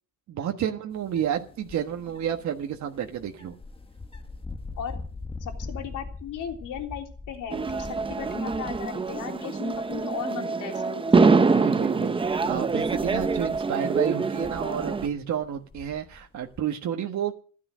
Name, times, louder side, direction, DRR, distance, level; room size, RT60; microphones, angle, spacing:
voice 1, 0.3-3.5 11.4-17.3, right 9 dB, 65° right, 4 dB, 1.5 m, -30 dB
sound 1, 0.9-9.4 9.7-10.2 10.7-10.8 11.7-16.6, left 3 dB, 15° left, 1.3 m, -43 dB
voice 2, 5.4-11.6, left 8 dB, 75° left, 3 dB, 3.4 m, -36 dB
sound 2, 7.5-15.1, right 4 dB, 15° right, 0.6 m, -25 dB
15.0 x 11.0 x 6.2 m, 0.42 s
cardioid pair, 125°, 31 cm